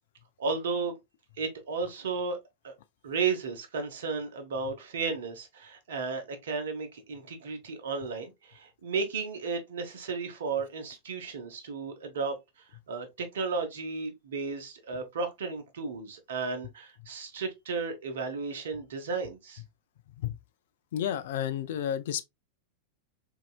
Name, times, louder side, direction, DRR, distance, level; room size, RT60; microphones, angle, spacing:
voice 1, 0.4-0.9 1.4-2.4 2.6-2.7 3.0-12.3 12.9-19.6, right 4 dB, 60° right, 0.9 m, -34 dB
voice 2, 20.9-22.2, left 10 dB, 55° left, 0.4 m, -31 dB
4.0 x 2.8 x 2.3 m
figure-of-eight pair, 90°, 0 cm